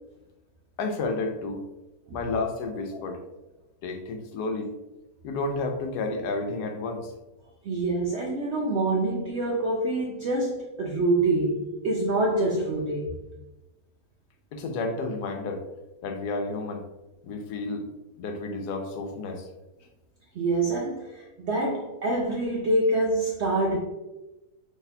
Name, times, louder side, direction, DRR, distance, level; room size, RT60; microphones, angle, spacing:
voice 1, 0.8-1.6 2.1-3.2 3.8-4.7 5.2-7.1 14.5-15.6 16.0-16.8 17.2-17.8 18.2-19.5, left 3 dB, 90° left, 4 dB, 1.2 m, -31 dB
voice 2, 7.6-13.1 20.3-23.8, right 2 dB, 75° right, -1 dB, 0.6 m, -26 dB
3.9 x 3.0 x 2.7 m, 1.0 s
omnidirectional pair, 1.7 m